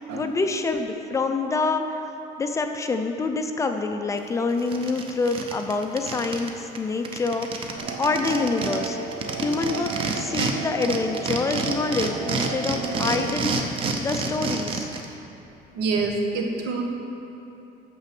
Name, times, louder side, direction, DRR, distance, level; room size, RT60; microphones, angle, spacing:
voice 1, 0.0-2.0 2.4-9.0 9.4-14.9, left 3 dB, 20° left, 6 dB, 0.4 m, -26 dB
sound 1, 4.2-4.3 4.6-6.5 6.7-6.8 7.0-10.5 10.8-15.0, right 4 dB, 30° right, 0.7 m, -28 dB
sound 2, 7.8-13.3, right 4 dB, 65° right, 0.7 m, -35 dB
voice 2, 15.7-16.8, right 3 dB, 90° right, 1 dB, 1.3 m, -26 dB
8.9 x 6.7 x 6.0 m, 2.9 s
cardioid pair, 175°, 17 cm